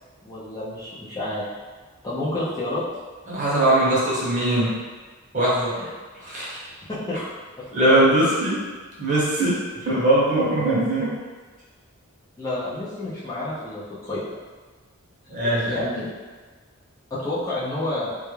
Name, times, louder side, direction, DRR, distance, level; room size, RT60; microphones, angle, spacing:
voice 1, 0.2-1.5 2.0-2.8 5.8-5.9 6.9-7.2 7.6-8.0 12.4-14.2 15.6-16.1 17.1-18.1, left 2 dB, 15° left, -10 dB, 0.4 m, -29 dB
voice 2, 3.3-4.7 5.3-5.7 6.2-6.6 7.7-8.6 9.0-11.1 15.3-15.9, right 1 dB, 35° right, -8 dB, 0.7 m, -21 dB
2.2 x 2.0 x 3.0 m, 1.4 s
head